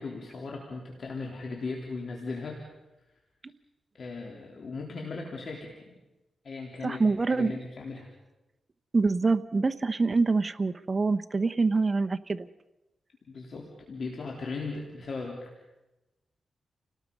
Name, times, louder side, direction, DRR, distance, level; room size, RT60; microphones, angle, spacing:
voice 1, 0.0-2.6 3.9-5.9 6.4-8.1 13.3-15.5, left 3 dB, 60° left, 0 dB, 3.4 m, -37 dB
voice 2, 6.8-7.5 8.9-12.5, right 3 dB, 35° right, 9 dB, 1.0 m, -25 dB
29.5 x 19.0 x 5.4 m, 1.0 s
cardioid pair, 75°, 0 cm